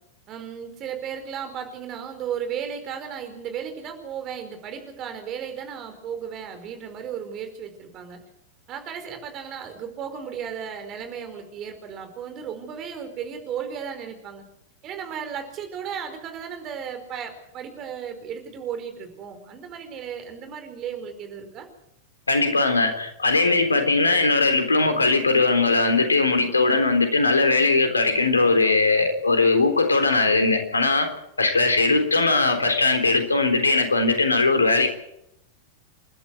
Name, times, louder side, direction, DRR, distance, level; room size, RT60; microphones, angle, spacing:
voice 1, 0.3-8.2 8.7-14.4 14.8-21.7, right 8 dB, 35° right, 7 dB, 4.8 m, -35 dB
voice 2, 22.3-31.1 31.4-34.9, left 3 dB, 75° left, 7 dB, 3.6 m, -20 dB
29.0 x 12.5 x 8.1 m, 0.79 s
figure-of-eight pair, 90°, 0 cm